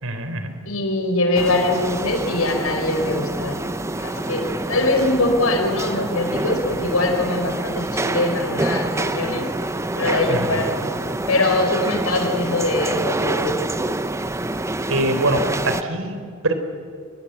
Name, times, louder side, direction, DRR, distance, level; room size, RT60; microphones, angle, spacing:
voice 1, 0.0-0.5 10.3-10.6 14.9-16.5, right 2 dB, 75° right, 8 dB, 3.6 m, -23 dB
voice 2, 0.6-3.7 4.0-9.5 9.9-10.9 11.3-13.6, left 2 dB, 85° left, 4 dB, 4.8 m, -22 dB
sound 1, 1.3-15.8, right 2 dB, 15° right, 0.7 m, -26 dB
28.5 x 22.0 x 8.1 m, 2.2 s
head